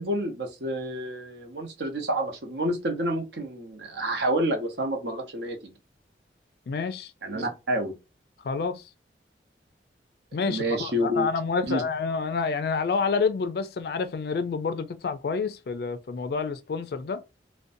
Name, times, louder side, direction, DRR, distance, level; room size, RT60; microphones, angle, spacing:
voice 1, 0.0-5.7 7.2-8.0 10.5-11.3 11.6-11.8, right 1 dB, 75° right, 0.7 m, -29 dB
voice 2, 6.7-7.1 8.4-8.8 10.3-17.2, left 5 dB, 60° left, 0.3 m, -28 dB
2.5 x 2.1 x 2.5 m
head